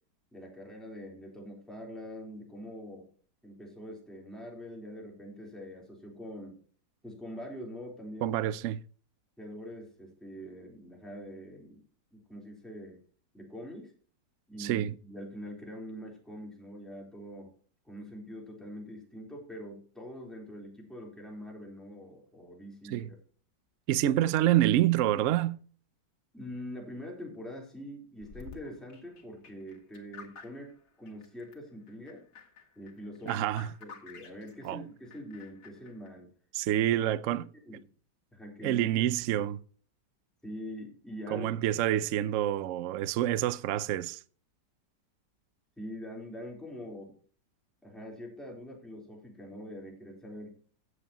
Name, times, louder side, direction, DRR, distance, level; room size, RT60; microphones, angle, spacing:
voice 1, 0.3-3.1 3.4-6.6 7.0-8.4 9.4-11.9 12.1-13.0 13.3-13.9 14.5-17.5 17.9-23.2 26.3-32.2 32.8-33.3 33.8-36.3 36.7-37.0 37.6-37.8 38.3-39.0 40.4-41.5 45.8-47.1 47.8-50.6, equal, ahead, 3.8 m, -44 dB
voice 2, 8.2-8.8 14.6-14.9 22.9-23.1 23.9-25.6 33.3-33.7 34.6-34.9 36.5-37.5 38.6-39.6 41.3-44.2, right 12 dB, 70° right, 0.7 m, -27 dB
sound 1, 28.2-31.6 31.9-34.7 35.0-36.1, left 5 dB, 65° left, 2.4 m, -51 dB
16.5 x 8.0 x 3.0 m
omnidirectional pair, 1.9 m